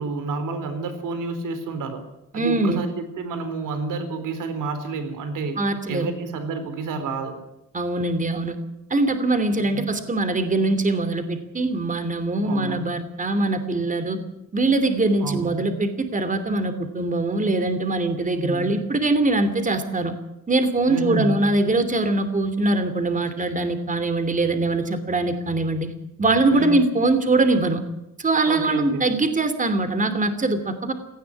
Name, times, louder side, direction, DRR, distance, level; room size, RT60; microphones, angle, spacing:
voice 1, 0.0-2.0 2.3-5.6 5.9-7.4 9.6-9.8 12.4-12.8 15.2-15.5 18.4-18.7 20.9-21.5 26.5-26.8 28.5-29.1, right 3 dB, 85° right, 9 dB, 4.1 m, -29 dB
voice 2, 2.3-2.8 5.6-6.1 7.7-8.6 8.9-14.2 14.5-20.1 20.5-25.9 26.2-27.8 28.2-30.9, right 2 dB, 25° right, 9 dB, 2.9 m, -22 dB
18.0 x 16.0 x 9.8 m, 0.91 s
cardioid pair, 115°, 31 cm